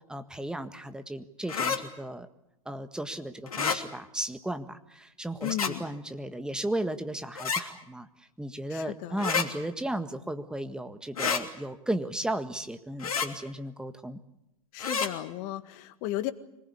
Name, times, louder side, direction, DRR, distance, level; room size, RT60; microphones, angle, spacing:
voice 1, 0.1-2.3 2.6-8.1 8.4-14.2, right 1 dB, 5° right, 9 dB, 1.7 m, -35 dB
sound 1, 1.5-1.8 3.5-3.8 5.4-5.7 7.4-7.6 9.2-9.5 11.2-11.4 13.0-13.3 14.8-15.1, left 6 dB, 75° left, 3.0 m, -28 dB
voice 2, 5.4-5.8 8.7-9.3 14.7-16.3, left 14 dB, 45° left, 12 dB, 1.9 m, -34 dB
26.0 x 20.5 x 8.5 m, 0.86 s
figure-of-eight pair, 95°, 19 cm